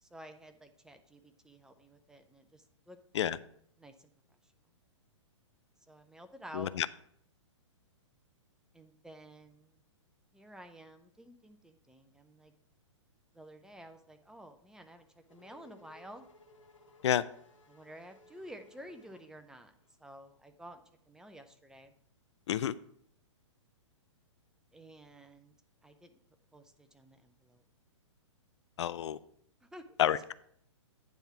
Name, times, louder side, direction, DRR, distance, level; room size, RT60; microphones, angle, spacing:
voice 1, 0.0-3.0 3.8-4.5 5.9-6.7 8.7-9.8 10.3-12.5 13.3-16.2 17.7-19.7 20.0-21.9 24.7-25.6 25.8-26.2 26.5-27.6 29.6-30.0, right 1 dB, 5° right, 7 dB, 0.5 m, -52 dB
voice 2, 6.5-6.9 17.0-17.2 22.5-22.8 28.8-29.2 30.0-30.3, left 10 dB, 65° left, 16 dB, 0.4 m, -29 dB
Race car auto racing / Accelerating revving vroom, 14.7-20.0, left 2 dB, 80° left, 1.7 m, -61 dB
9.1 x 3.5 x 6.8 m, 0.67 s
hypercardioid pair, 125°, 16 cm